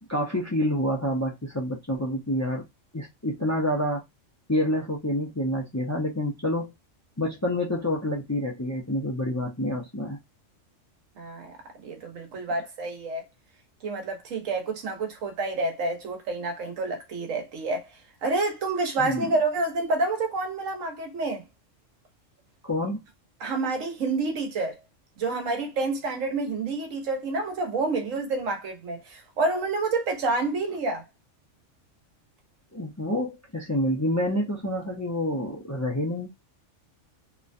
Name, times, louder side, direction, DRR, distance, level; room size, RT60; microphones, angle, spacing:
voice 1, 0.1-2.6 2.9-4.0 4.5-6.7 7.2-10.2 19.0-19.3 22.6-23.0 32.7-36.3, left 1 dB, 20° left, 0.4 m, -28 dB
voice 2, 11.2-11.6 11.8-13.2 13.8-17.9 18.2-21.4 23.4-24.8 25.2-31.0, right 3 dB, 90° right, 1.3 m, -28 dB
2.9 x 2.2 x 2.5 m
omnidirectional pair, 1.3 m